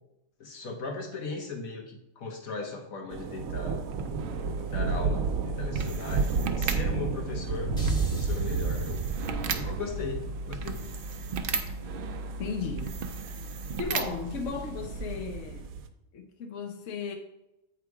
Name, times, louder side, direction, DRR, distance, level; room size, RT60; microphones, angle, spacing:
voice 1, 0.4-3.8 4.7-6.3 6.6-7.7 8.2-9.1 9.5-10.8, left 3 dB, 80° left, 1 dB, 1.6 m, -38 dB
sound 1, 3.1-15.9, right 5 dB, 75° right, 1.0 m, -33 dB
sound 2, 3.7-15.7, right 3 dB, 60° right, 0.6 m, -36 dB
sound 3, 7.8-12.1, right 2 dB, 5° left, 2.3 m, -37 dB
voice 2, 12.4-13.0 13.3-13.4 13.8-15.8 16.1-17.1, left 5 dB, 65° left, 3 dB, 1.0 m, -35 dB
8.2 x 3.7 x 4.7 m, 0.89 s
omnidirectional pair, 1.5 m